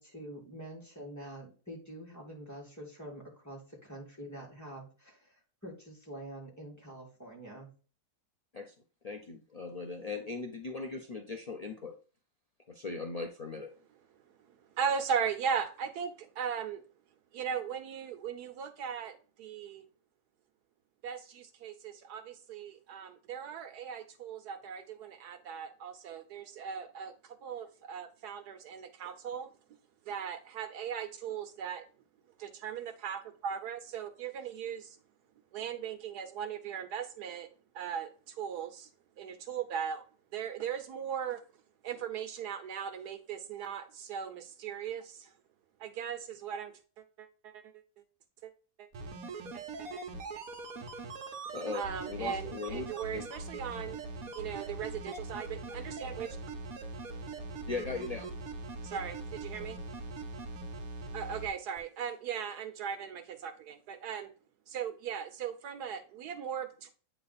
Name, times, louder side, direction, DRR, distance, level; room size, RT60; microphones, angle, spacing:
voice 1, 0.0-7.7, right 1 dB, 10° left, -3 dB, 2.0 m, -46 dB
voice 2, 9.0-11.9 12.7-13.7 51.5-52.9 53.1-53.2 57.7-58.3, left 4 dB, 70° left, 3 dB, 0.3 m, -39 dB
voice 3, 14.8-16.8 17.3-19.1 19.4-19.8 21.0-27.1 27.4-29.5 30.1-31.8 32.6-32.7 33.0-33.2 33.4-34.9 35.5-37.5 37.7-38.1 38.4-38.9 39.2-40.0 40.3-41.4 41.8-45.3 45.8-46.7 47.2-47.6 48.4-48.5 48.8-48.9 49.8-50.0 51.7-54.0 54.3-56.3 58.8-59.8 61.1-64.3 64.7-66.9, right 7 dB, 85° right, 8 dB, 1.5 m, -38 dB
sound 1, 48.9-61.5 61.8-61.9, right 3 dB, 65° right, 1.5 m, -42 dB
8.6 x 3.4 x 4.1 m, 0.38 s
omnidirectional pair, 1.6 m